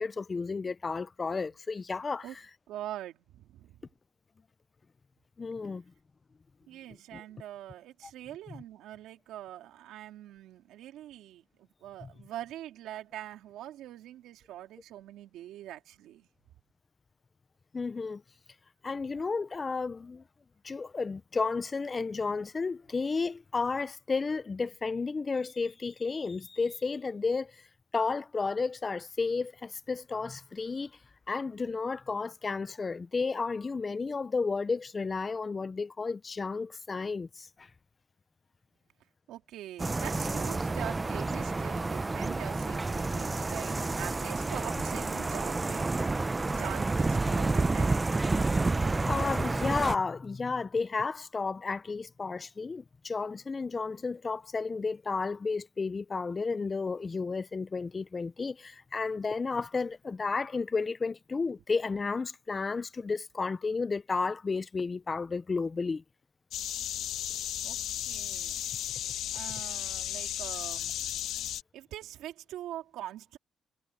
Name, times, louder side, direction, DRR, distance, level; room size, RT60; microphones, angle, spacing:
voice 1, 0.0-2.3 5.4-5.8 7.1-7.2 12.0-12.1 17.7-18.2 18.8-20.2 20.6-27.5 27.9-30.9 31.3-37.7 48.3-48.4 48.9-66.0, left 4 dB, 30° left, 0.7 m, -32 dB
voice 2, 2.7-3.8 6.7-16.3 19.0-19.1 39.3-48.0 67.6-68.7 69.3-71.3 71.7-73.4, right 13 dB, 85° right, 3.6 m, -44 dB
sound 1, 39.8-50.0, right 3 dB, 20° right, 0.7 m, -29 dB
sound 2, 66.5-71.6, left 11 dB, 80° left, 1.3 m, -35 dB
cardioid pair, 90°, 0 cm